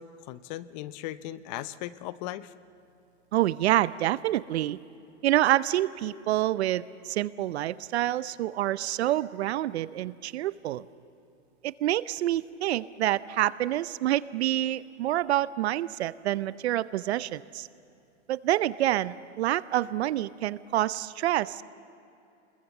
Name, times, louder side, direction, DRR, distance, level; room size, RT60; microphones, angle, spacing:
voice 1, 0.0-2.5, left 14 dB, 35° left, 16 dB, 0.8 m, -38 dB
voice 2, 3.3-4.8 5.2-10.8 11.6-17.7 18.3-21.6, right 14 dB, 60° right, 17 dB, 0.7 m, -27 dB
29.5 x 21.5 x 7.1 m, 2.7 s
hypercardioid pair, 145°, 36 cm